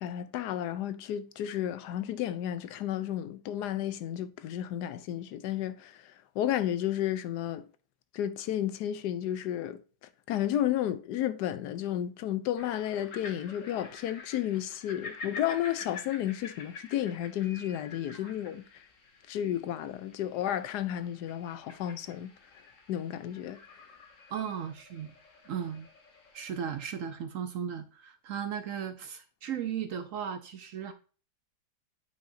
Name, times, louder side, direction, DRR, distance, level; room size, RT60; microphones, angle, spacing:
voice 1, 0.0-6.0 6.4-7.6 8.1-9.8 10.3-18.6 19.3-22.3 22.9-23.6, left 11 dB, 80° left, 1.2 m, -32 dB
sound 1, 12.6-26.8, left 4 dB, 55° left, 1.4 m, -48 dB
voice 2, 24.3-25.1 25.5-25.9 26.3-30.9, right 8 dB, 65° right, 0.8 m, -36 dB
8.3 x 4.8 x 2.6 m
omnidirectional pair, 1.8 m